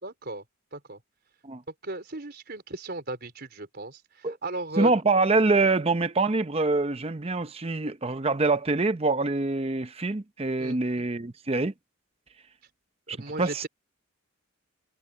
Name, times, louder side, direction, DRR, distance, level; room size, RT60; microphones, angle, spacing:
voice 1, 0.0-0.4 0.7-1.0 1.8-4.9 10.6-10.8 13.1-13.7, right 2 dB, 50° right, 4.4 m, -36 dB
voice 2, 4.8-11.7 13.4-13.7, right 3 dB, 30° right, 0.7 m, -25 dB
head